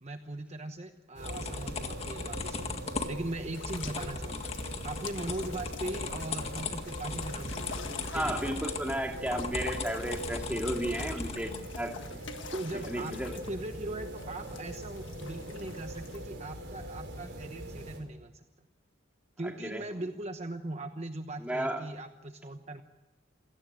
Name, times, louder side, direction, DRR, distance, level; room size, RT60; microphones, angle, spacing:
voice 1, 0.0-8.4 12.5-18.4 19.4-22.8, right 1 dB, 35° right, 7 dB, 1.0 m, -40 dB
sound 1, 1.1-18.0, right 1 dB, 65° right, 5.8 m, -43 dB
sound 2, 1.2-11.6, left 3 dB, 35° left, 1.9 m, -38 dB
sound 3, 3.5-16.3, left 5 dB, 75° left, 1.7 m, -47 dB
voice 2, 8.1-12.2 12.9-13.4 19.4-20.0 21.4-21.8, right 1 dB, 5° right, 2 dB, 2.6 m, -33 dB
27.5 x 17.5 x 7.7 m, 1.1 s
head